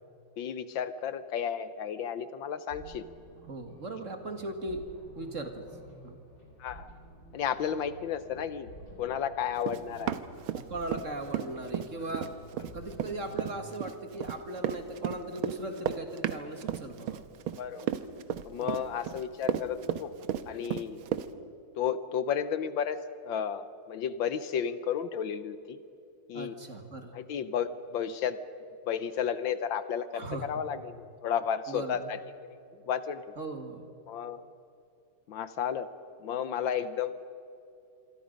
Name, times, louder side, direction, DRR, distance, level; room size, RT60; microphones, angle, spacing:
voice 1, 0.4-3.0 6.6-6.9 7.3-8.7 9.0-10.2 17.6-17.9 18.4-20.1 20.5-21.0 21.8-23.0 23.2-25.8 26.3-26.5 27.1-28.4 28.9-32.2 32.9-33.3 34.1-34.4 35.3-35.9 36.2-37.1, left 8 dB, 70° left, 12 dB, 1.5 m, -32 dB
sound 1, 2.7-13.7, right 1 dB, 45° left, 4.4 m, -51 dB
voice 2, 3.4-4.8 5.2-5.7 6.0-6.2 10.6-12.3 12.7-17.2 18.6-18.8 26.3-27.1 30.1-30.6 31.7-32.1 33.4-33.9, right 2 dB, 40° right, 5 dB, 1.9 m, -38 dB
Run, 9.6-11.1 11.3-21.3, right 10 dB, 85° right, 1.7 m, -33 dB
27.0 x 24.0 x 5.2 m, 2.6 s
omnidirectional pair, 2.3 m